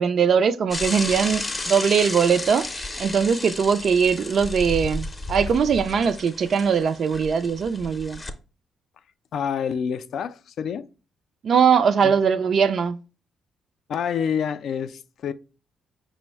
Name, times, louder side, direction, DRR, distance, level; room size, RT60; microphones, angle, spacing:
voice 1, 0.0-8.2 11.4-13.0, right 6 dB, 55° right, 0.3 m, -21 dB
Bicycle / Mechanisms, 0.7-8.3, left 2 dB, 20° left, 0.6 m, -33 dB
voice 2, 9.3-10.9 12.0-12.1 13.9-15.3, left 7 dB, 65° left, 0.3 m, -27 dB
5.3 x 2.1 x 4.4 m
cardioid pair, 90°, 0 cm